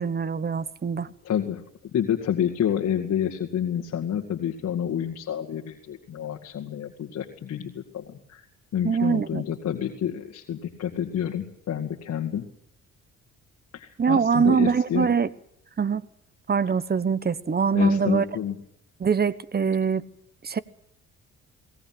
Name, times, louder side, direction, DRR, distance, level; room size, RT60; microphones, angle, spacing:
voice 1, 0.0-1.1 8.8-9.4 14.0-15.3 15.8-16.0 16.5-18.2 19.0-20.0 20.4-20.6, right 6 dB, 30° right, 1.0 m, -23 dB
voice 2, 1.2-1.6 1.9-8.4 8.7-12.4 13.7-15.1 17.7-18.6, left 9 dB, 60° left, 2.1 m, -28 dB
21.5 x 19.0 x 7.7 m
cardioid pair, 90°, 30 cm